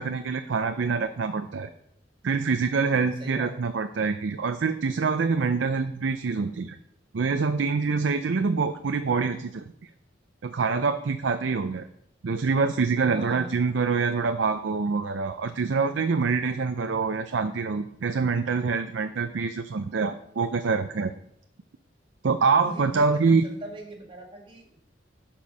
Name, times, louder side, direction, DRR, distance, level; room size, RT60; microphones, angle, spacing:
voice 1, 0.0-1.7 2.2-6.8 7.1-9.7 10.4-11.9 12.2-21.1 22.2-23.4, right 4 dB, 80° right, 8 dB, 0.5 m, -25 dB
voice 2, 13.0-13.7 22.5-24.8, right 1 dB, 30° right, 1 dB, 2.0 m, -40 dB
12.0 x 4.5 x 5.2 m, 0.73 s
head